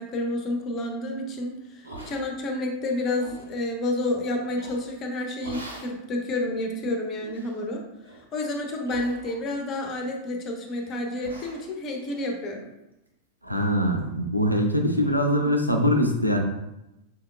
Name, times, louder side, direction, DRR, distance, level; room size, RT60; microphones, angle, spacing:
voice 1, 0.0-7.8 8.3-12.7, left 1 dB, 30° left, 2 dB, 0.8 m, -30 dB
sound 1, 1.8-2.6 3.0-3.5 4.6-5.0 5.4-6.0 6.5-6.6 7.2-7.6 8.0-8.3 8.8-9.6 9.9-10.4 10.8-10.9 11.2-13.1 13.4-13.7 14.0-14.1 14.5-14.6 15.0-15.2, right 1 dB, 80° right, 0.8 m, -44 dB
voice 2, 13.4-16.4, equal, 90° left, 3 dB, 0.5 m, -23 dB
5.8 x 3.7 x 2.3 m, 0.92 s
figure-of-eight pair, 90°, 0 cm